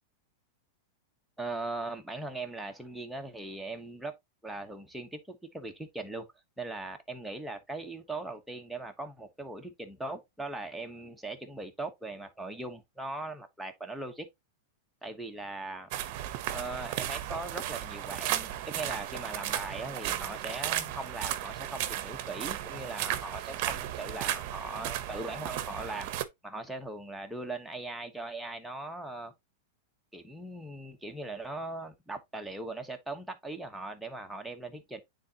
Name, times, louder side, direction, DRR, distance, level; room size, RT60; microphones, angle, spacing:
voice 1, 1.4-4.1 4.4-6.3 6.6-14.3 15.0-15.9 16.5-26.1 26.4-29.3 30.1-35.0, right 2 dB, ahead, 1.0 m, -39 dB
sound 1, 15.9-26.2, right 12 dB, 50° right, 0.8 m, -35 dB
9.3 x 3.8 x 2.9 m
supercardioid pair, 145°, 0 cm